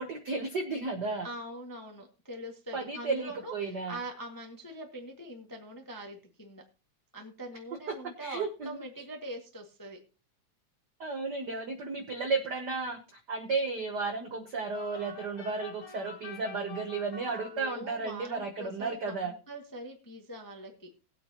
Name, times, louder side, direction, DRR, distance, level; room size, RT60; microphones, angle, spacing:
voice 1, 0.0-1.3 2.7-4.0 7.9-8.9 11.0-19.3, right 4 dB, 70° right, 5 dB, 0.9 m, -33 dB
voice 2, 1.2-3.5 3.9-6.6 7.1-10.0 17.5-20.7, right 1 dB, 15° left, 2 dB, 0.7 m, -43 dB
sound 1, 14.7-18.2, left 3 dB, 50° left, 2.2 m, -47 dB
19.5 x 8.4 x 2.9 m, 0.34 s
omnidirectional pair, 3.4 m